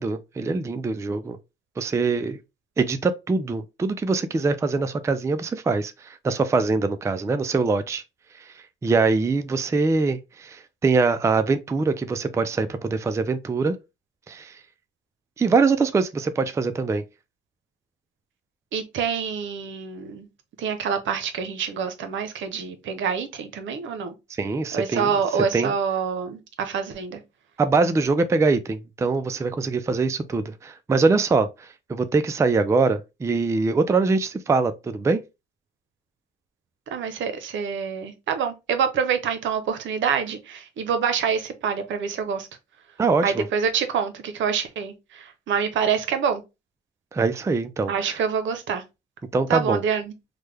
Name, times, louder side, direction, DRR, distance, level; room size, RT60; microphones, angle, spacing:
voice 1, 0.0-1.4 1.8-2.4 2.8-8.0 8.4-13.7 14.3-14.6 15.4-17.0 24.3-25.1 25.5-25.7 27.6-35.2 43.0-43.4 47.1-48.2 49.3-49.8, right 4 dB, 15° right, 0.3 m, -23 dB
voice 2, 18.7-20.3 20.6-24.1 24.7-27.2 36.9-42.5 43.2-46.4 47.9-48.8 49.5-50.1, right 7 dB, 70° right, 0.7 m, -26 dB
3.2 x 2.2 x 3.2 m
cardioid pair, 90°, 20 cm